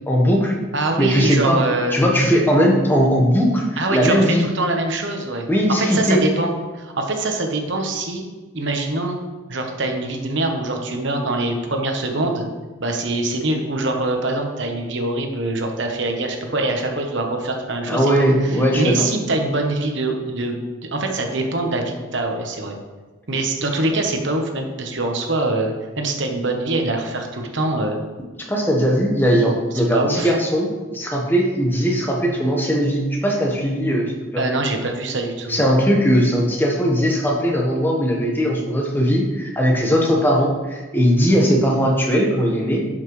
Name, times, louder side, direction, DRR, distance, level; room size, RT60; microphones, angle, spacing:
voice 1, 0.1-0.5 1.0-1.6 1.9-4.4 5.5-6.2 17.9-19.1 28.5-34.5 35.5-42.8, equal, 10° left, -1 dB, 1.2 m, -19 dB
voice 2, 0.7-2.0 3.8-5.5 5.8-8.2 8.5-9.2 9.5-12.5 12.8-22.7 23.3-28.0 29.9-30.3 34.4-35.7, right 2 dB, 60° right, 3 dB, 1.1 m, -24 dB
11.5 x 5.7 x 3.2 m, 1.3 s
head